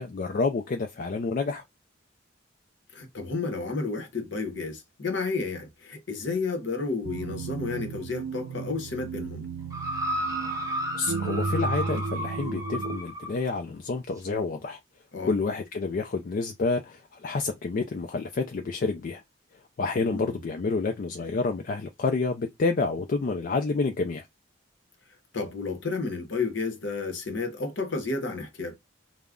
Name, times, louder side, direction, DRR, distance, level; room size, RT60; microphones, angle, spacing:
voice 1, 0.0-1.6 10.9-14.8 15.2-19.2 19.8-24.3, left 4 dB, 45° left, 0.3 m, -29 dB
voice 2, 2.9-9.5 15.1-15.3 20.0-20.4 25.3-28.8, left 4 dB, 60° left, 0.8 m, -31 dB
sound 1, 7.0-13.0, right 4 dB, 85° right, 0.4 m, -34 dB
sound 2, 9.7-13.4 14.2-14.3, right 1 dB, 15° right, 0.6 m, -32 dB
2.3 x 2.0 x 3.5 m
head